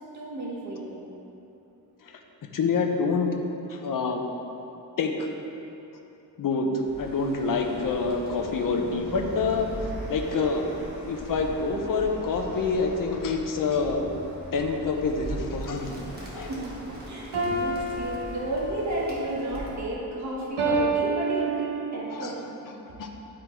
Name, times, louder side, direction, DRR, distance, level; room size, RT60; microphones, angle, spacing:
voice 1, 0.1-1.0 16.5-22.4, right 1 dB, 45° right, -4 dB, 1.3 m, -32 dB
voice 2, 2.5-3.3 3.7-4.2 5.0-5.3 6.4-9.7 10.1-10.6 11.0-14.1 14.5-16.0 16.3-16.5 22.1-22.3 22.7-23.1, left 4 dB, 55° left, 3 dB, 0.7 m, -27 dB
Bird, 6.8-19.9, right 1 dB, 25° right, 1.3 m, -41 dB
sound 1, 7.4-16.4, equal, 5° right, 1.2 m, -46 dB
sound 2, 17.3-18.9 20.6-22.1, right 3 dB, 90° right, 1.4 m, -28 dB
11.0 x 3.8 x 4.4 m, 2.9 s
wide cardioid pair, 150°, 39 cm